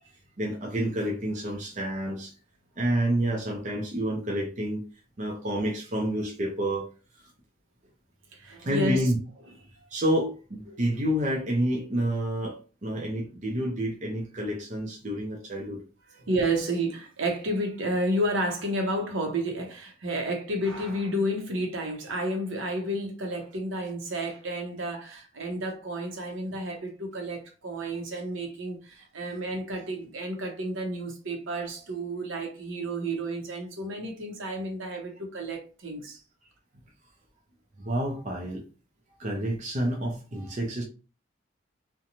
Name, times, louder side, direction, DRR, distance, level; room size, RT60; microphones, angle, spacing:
voice 1, 0.4-2.4 2.8-4.8 5.2-6.9 8.6-9.2 9.9-15.8 37.8-38.6 39.2-40.8, right 1 dB, 40° right, 0.5 m, -29 dB
voice 2, 8.3-9.1 10.7-10.8 16.1-36.2, right 1 dB, 80° right, 0.8 m, -31 dB
2.6 x 2.2 x 2.9 m
head